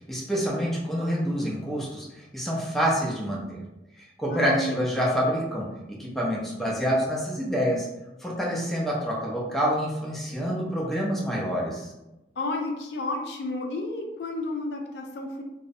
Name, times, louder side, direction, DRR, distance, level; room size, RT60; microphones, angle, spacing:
voice 1, 0.1-3.6 4.0-7.9 8.2-11.9, equal, ahead, -4 dB, 0.4 m, -27 dB
voice 2, 4.3-4.8 12.4-15.4, left 2 dB, 65° left, 2 dB, 0.4 m, -31 dB
2.5 x 2.0 x 2.5 m, 0.95 s
head